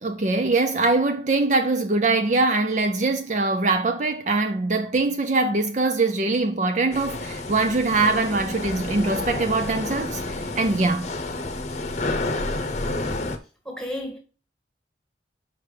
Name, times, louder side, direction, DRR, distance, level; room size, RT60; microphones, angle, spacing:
voice 1, 0.0-11.1, right 3 dB, 40° right, 0.5 m, -23 dB
sound 1, 6.9-13.4, left 2 dB, 40° left, 0.8 m, -30 dB
voice 2, 13.7-14.2, left 1 dB, 5° left, 1.8 m, -32 dB
5.7 x 5.1 x 4.9 m
head